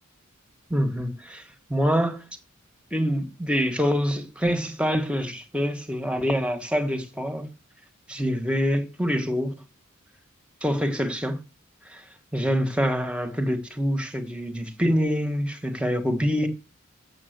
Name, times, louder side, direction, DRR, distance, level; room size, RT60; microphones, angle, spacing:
voice 1, 0.7-1.4 1.7-2.2 2.9-7.5 8.1-9.5 10.6-11.4 11.9-12.0 12.3-16.5, equal, 5° right, 1.3 m, -25 dB
7.5 x 7.0 x 7.9 m
head